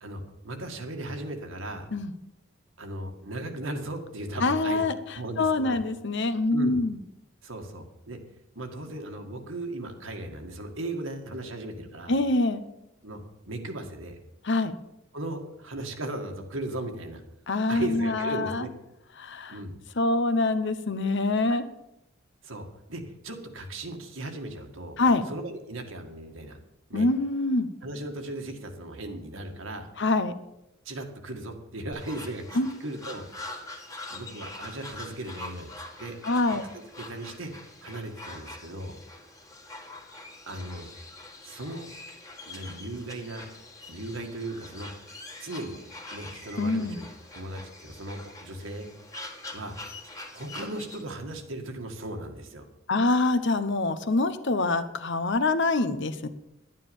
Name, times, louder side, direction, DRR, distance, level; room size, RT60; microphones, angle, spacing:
voice 1, 0.0-1.9 2.8-4.9 5.1-5.8 6.5-6.8 7.4-8.2 8.6-12.2 13.0-13.2 13.5-14.2 15.1-17.2 17.7-18.7 19.5-19.8 21.5-21.6 22.4-25.0 25.3-26.6 26.9-27.1 27.8-29.9 30.9-33.3 34.1-35.7 36.0-36.2 36.7-37.5 37.8-39.0 40.5-40.9 41.4-41.9 42.5-43.5 43.9-45.8 46.1-47.1 47.3-48.9 49.5-49.8 50.0-52.7, right 1 dB, 80° right, 4 dB, 1.9 m, -37 dB
voice 2, 4.4-4.9 5.4-7.0 12.1-12.6 14.4-14.7 17.5-18.7 19.2-19.6 20.0-21.6 25.0-25.3 26.9-27.7 30.0-30.3 32.6-32.7 36.2-36.6 46.6-47.0 52.9-56.3, left 2 dB, 65° left, 11 dB, 1.0 m, -25 dB
sound 1, 31.9-51.0, left 2 dB, 15° left, 1.8 m, -44 dB
11.5 x 9.6 x 7.0 m, 0.88 s
head